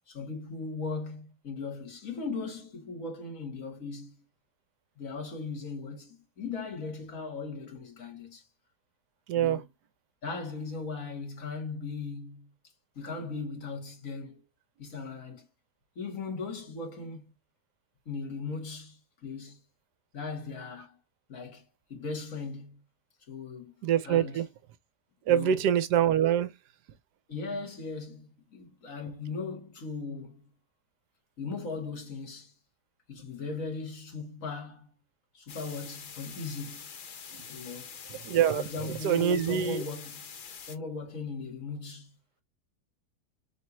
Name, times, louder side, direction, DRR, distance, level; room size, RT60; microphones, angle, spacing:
voice 1, 0.1-4.2 5.0-8.5 9.4-9.7 10.2-12.5 13.0-14.4 14.8-15.5 16.0-17.3 18.1-19.6 20.1-21.0 21.3-21.6 21.9-22.8 23.3-23.7 24.0-24.5 25.3-25.8 27.3-30.4 31.4-32.5 33.1-34.9 35.3-36.9 37.5-37.9 38.5-40.4 40.7-42.2, left 4 dB, 50° left, 1.9 m, -38 dB
voice 2, 9.3-9.6 23.8-24.5 25.3-26.5 37.3-37.4 38.1-39.8, right 9 dB, 75° right, 1.2 m, -25 dB
sound 1, 35.5-40.8, left 6 dB, 75° left, 0.4 m, -45 dB
4.4 x 3.5 x 3.0 m
omnidirectional pair, 1.8 m